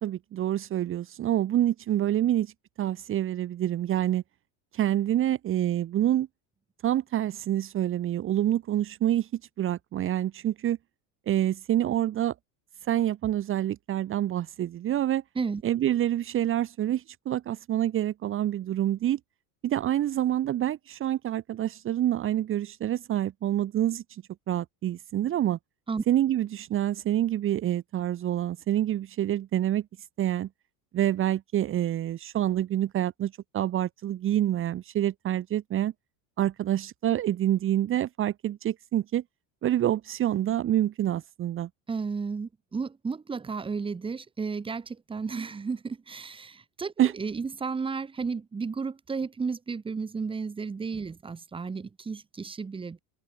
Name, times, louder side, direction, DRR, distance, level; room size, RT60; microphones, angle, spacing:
voice 1, 0.0-2.5 2.8-4.2 4.7-6.3 6.8-9.3 9.6-10.8 11.3-12.3 12.9-15.2 15.6-19.2 19.6-25.6 26.1-29.9 30.2-30.5 30.9-35.9 36.4-39.2 39.6-41.7 47.0-47.1, right 12 dB, 30° right, 2.4 m, -27 dB
voice 2, 41.9-53.0, right 5 dB, 10° right, 3.0 m, -33 dB
open air
cardioid pair, 175°, 43 cm